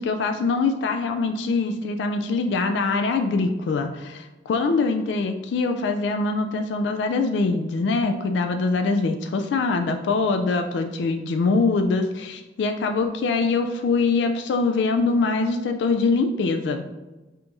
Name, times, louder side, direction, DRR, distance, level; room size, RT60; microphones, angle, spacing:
voice 1, 0.0-16.8, left 3 dB, 85° left, 6 dB, 0.3 m, -23 dB
5.5 x 2.9 x 2.6 m, 1.1 s
head